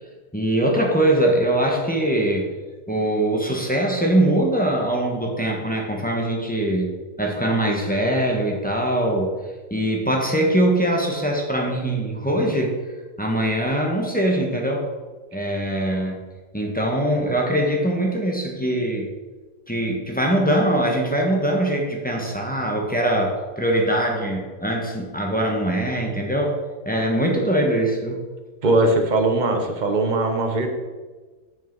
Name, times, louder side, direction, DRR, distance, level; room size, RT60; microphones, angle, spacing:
voice 1, 0.3-2.5 2.9-6.9 7.2-9.3 9.7-12.7 13.2-14.9 15.3-16.2 16.5-19.1 19.7-26.6 26.8-28.2, right 1 dB, 5° left, -1 dB, 1.0 m, -22 dB
voice 2, 28.6-30.7, right 2 dB, 35° right, 4 dB, 0.9 m, -20 dB
6.4 x 6.4 x 4.6 m, 1.3 s
omnidirectional pair, 1.6 m